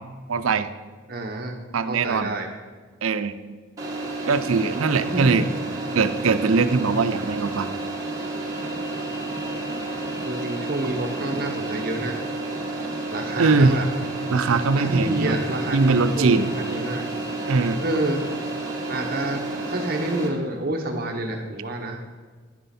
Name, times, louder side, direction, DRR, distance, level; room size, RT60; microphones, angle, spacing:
voice 1, 0.3-0.7 1.7-2.3 3.0-3.4 4.3-5.5 5.9-7.7 13.4-13.8 14.3-15.4 15.7-16.5 17.5-17.8, right 4 dB, 85° right, 11 dB, 0.5 m, -21 dB
voice 2, 1.1-1.6 1.9-2.5 5.1-5.4 10.3-12.2 13.1-13.9 14.7-17.1 17.8-18.5 18.9-19.4 19.7-22.0, right 1 dB, 45° right, 3 dB, 0.9 m, -28 dB
sound 1, 3.8-20.3, right 2 dB, 15° right, 1.4 m, -30 dB
10.5 x 9.1 x 4.2 m, 1.5 s
head